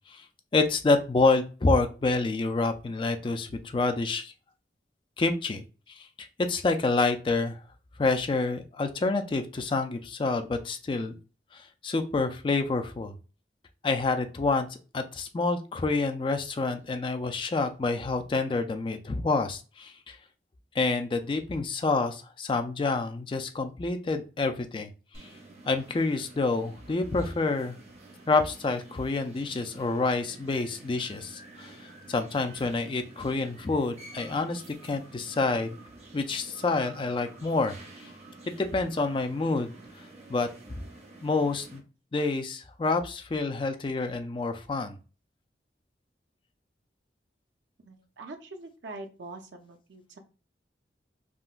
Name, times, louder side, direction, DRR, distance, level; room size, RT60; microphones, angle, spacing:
voice 1, 0.5-4.3 5.2-7.6 8.0-11.1 11.5-13.2 13.8-20.2 20.7-24.9 25.2-25.3 25.7-27.8 28.3-35.8 36.1-38.1 38.5-40.5 41.2-41.8 42.1-45.0, left 3 dB, 30° left, 7 dB, 0.3 m, -28 dB
sound 1, 25.1-41.8, right 2 dB, 35° right, 0.7 m, -50 dB
voice 2, 47.8-50.2, right 2 dB, 85° right, 5 dB, 0.6 m, -44 dB
3.7 x 2.1 x 2.4 m, 0.34 s
head